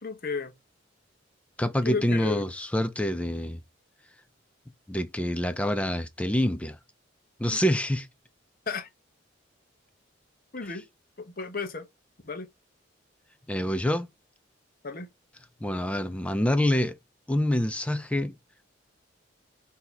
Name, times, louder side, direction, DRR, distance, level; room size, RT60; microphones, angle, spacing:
voice 1, 0.0-0.5 1.8-2.4 8.7-8.9 10.5-10.8 11.2-11.9 12.2-12.5 14.8-15.1, left 4 dB, 45° left, 0.9 m, -33 dB
voice 2, 1.6-3.6 4.9-6.8 7.4-8.1 13.5-14.1 15.6-17.0 17.3-18.3, left 1 dB, 5° left, 0.3 m, -26 dB
3.9 x 2.7 x 4.5 m
head